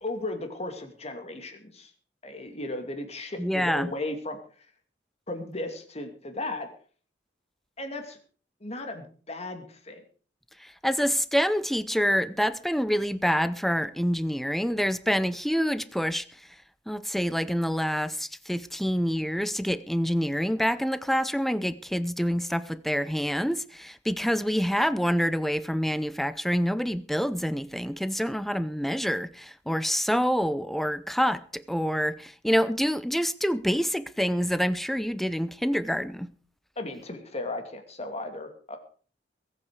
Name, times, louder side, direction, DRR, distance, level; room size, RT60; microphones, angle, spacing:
voice 1, 0.0-1.9 2.2-4.4 5.3-6.7 7.8-8.2 8.6-10.0 36.8-38.8, left 2 dB, 35° left, 2.6 m, -35 dB
voice 2, 3.4-3.9 10.6-16.2 16.9-36.3, equal, ahead, 0.7 m, -27 dB
22.0 x 8.8 x 4.8 m
head